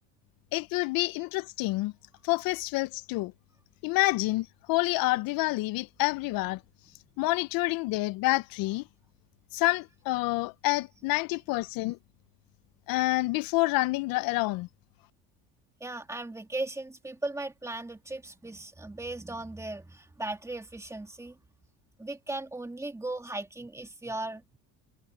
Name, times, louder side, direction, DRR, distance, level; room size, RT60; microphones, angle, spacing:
voice 1, 0.5-1.9 2.2-3.3 3.8-6.6 7.2-8.8 9.5-12.0 12.9-14.7, left 21 dB, 65° left, 0.6 m, -28 dB
voice 2, 15.8-21.4 22.0-24.6, right 2 dB, 10° right, 2.3 m, -37 dB
cardioid pair, 125°, 37 cm